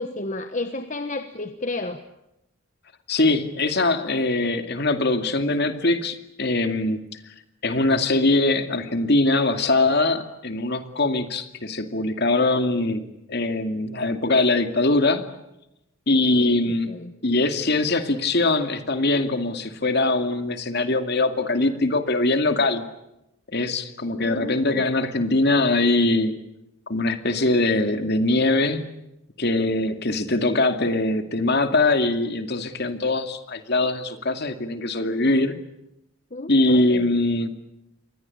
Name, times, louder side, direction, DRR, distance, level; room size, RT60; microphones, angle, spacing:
voice 1, 0.0-2.0 16.3-17.1 24.1-24.8 36.3-37.1, left 2 dB, 35° left, 8 dB, 1.3 m, -32 dB
voice 2, 3.1-7.0 7.6-13.0 13.3-15.2 16.1-16.9 17.2-22.8 23.5-26.4 26.9-29.0 29.4-35.6 36.5-37.5, left 2 dB, 50° left, 8 dB, 2.5 m, -22 dB
28.5 x 23.0 x 8.6 m, 0.87 s
head